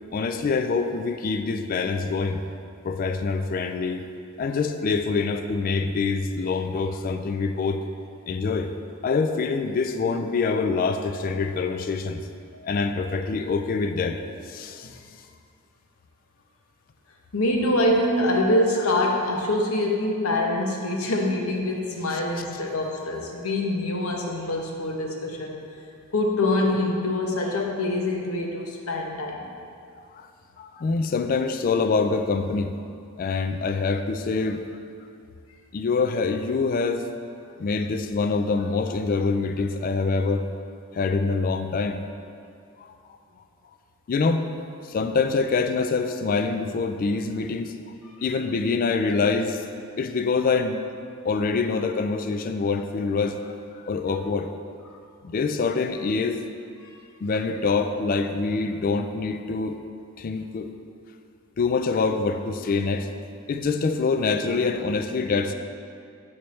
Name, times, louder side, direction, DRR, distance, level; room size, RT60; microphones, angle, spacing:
voice 1, 0.1-2.4 2.8-4.1 4.4-7.8 8.3-8.7 9.0-12.2 12.6-15.0 22.1-22.2 30.1-30.3 30.6-32.7 33.2-34.6 35.7-37.1 37.6-40.6 40.9-42.0 42.8-42.9 44.1-44.5 44.8-47.9 48.2-49.7 50.0-50.8 51.2-54.5 55.2-56.4 57.2-59.8 60.2-60.7 61.6-63.1 63.5-65.5, left 4 dB, 40° left, 7 dB, 0.3 m, -25 dB
voice 2, 17.3-25.6 26.1-29.5, left 1 dB, 85° left, 0 dB, 0.8 m, -25 dB
8.4 x 4.3 x 3.2 m, 2.4 s
head